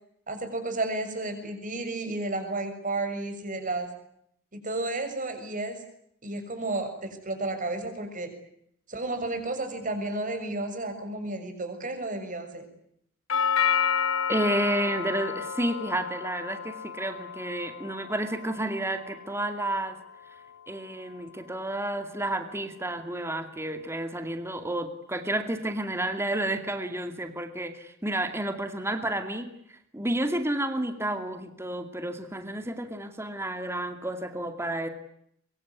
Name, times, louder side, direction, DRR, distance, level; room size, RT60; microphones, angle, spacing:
voice 1, 0.3-3.9 4.6-5.8 6.2-8.3 8.9-12.6, right 2 dB, 40° right, 7 dB, 6.9 m, -32 dB
Doorbell, 13.3-21.4, left 7 dB, 65° left, 1.4 m, -31 dB
voice 2, 14.3-20.0 20.7-34.9, right 1 dB, 10° right, 7 dB, 2.4 m, -31 dB
24.5 x 24.0 x 9.7 m, 0.72 s
head